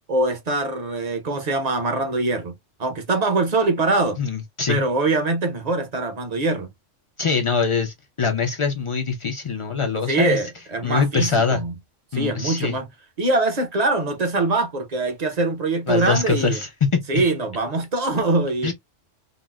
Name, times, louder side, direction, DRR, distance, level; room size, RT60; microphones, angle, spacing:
voice 1, 0.1-2.5 2.8-4.2 4.7-6.7 10.1-11.7 12.1-12.9 13.2-16.6 17.1-18.7, right 2 dB, 40° right, 0.7 m, -23 dB
voice 2, 4.2-4.8 7.2-10.4 10.8-11.6 12.1-12.7 15.9-16.7 17.1-17.2 18.6-18.7, left 5 dB, 55° left, 0.3 m, -23 dB
3.9 x 2.0 x 2.3 m
omnidirectional pair, 1.3 m